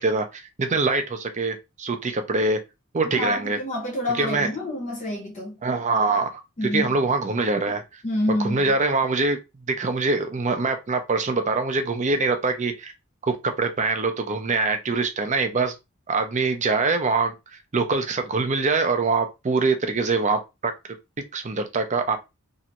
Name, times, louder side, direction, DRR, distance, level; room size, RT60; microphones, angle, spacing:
voice 1, 0.0-2.6 2.9-3.6 4.2-4.5 5.6-6.3 6.6-7.8 8.3-9.4 9.7-12.9 13.2-15.7 16.1-17.3 17.7-20.7 21.3-22.2, right 3 dB, 35° right, 0.6 m, -24 dB
voice 2, 3.1-5.5 6.6-6.9 8.0-8.7, left 1 dB, 35° left, 0.7 m, -27 dB
3.1 x 2.5 x 2.9 m
head